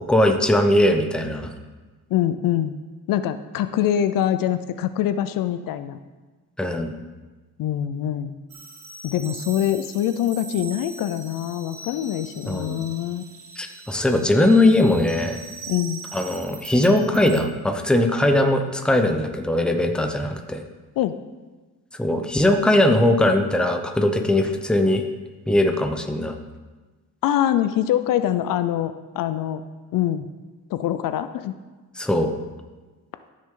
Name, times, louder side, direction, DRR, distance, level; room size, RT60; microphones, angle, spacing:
voice 1, 0.0-1.5 6.6-6.9 12.5-12.9 13.6-15.4 16.1-20.6 22.0-25.0 25.5-26.3 32.0-32.3, left 1 dB, 5° left, 5 dB, 0.7 m, -20 dB
voice 2, 2.1-2.8 3.1-6.0 7.6-8.4 9.0-13.2 15.7-16.0 21.0-21.2 27.2-29.6 29.9-30.3 30.7-31.6, left 11 dB, 70° left, 11 dB, 0.6 m, -24 dB
sound 1, 8.5-17.4, right 4 dB, 55° right, 1.8 m, -41 dB
14.0 x 6.3 x 3.8 m, 1.3 s
cardioid pair, 135°, 34 cm